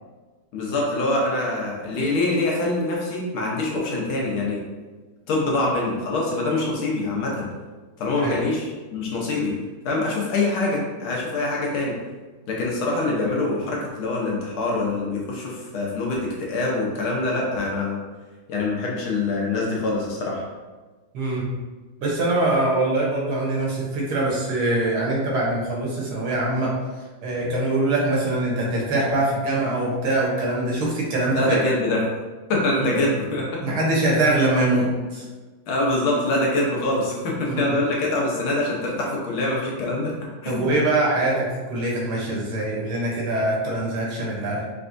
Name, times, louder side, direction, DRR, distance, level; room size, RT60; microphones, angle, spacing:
voice 1, 0.5-4.6 5.3-7.4 8.0-9.5 9.8-11.9 12.5-18.0 18.5-20.4 31.3-32.1 32.5-33.6 35.7-40.1 40.4-40.7, left 2 dB, 70° left, -3 dB, 1.7 m, -24 dB
voice 2, 21.1-21.5 22.0-26.7 27.2-31.6 32.8-33.0 33.6-35.3 37.5-37.8 40.5-44.6, right 2 dB, 70° right, -3 dB, 1.8 m, -23 dB
4.7 x 3.3 x 2.6 m, 1.3 s
omnidirectional pair, 2.4 m